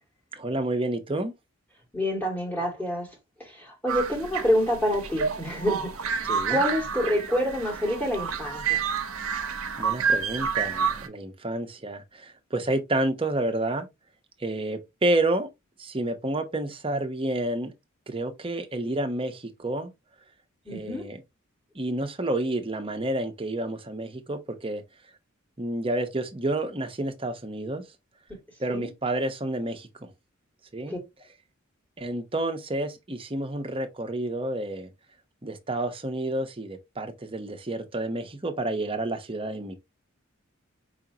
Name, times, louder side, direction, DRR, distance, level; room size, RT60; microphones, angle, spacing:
voice 1, 0.4-1.3 6.3-6.6 9.8-13.9 14.4-15.5 15.8-17.7 18.1-19.9 20.7-21.2 21.7-24.8 25.6-27.8 28.6-30.1 30.7-30.9 32.0-34.9 35.4-39.8, right 1 dB, 25° right, 0.9 m, -29 dB
voice 2, 1.9-3.1 3.4-8.8 20.7-21.0 28.3-28.4 28.7-28.9 30.9-31.0, equal, 10° left, 2.2 m, -27 dB
sound 1, 3.9-11.1, right 6 dB, 85° right, 0.9 m, -29 dB
5.0 x 3.6 x 2.8 m
head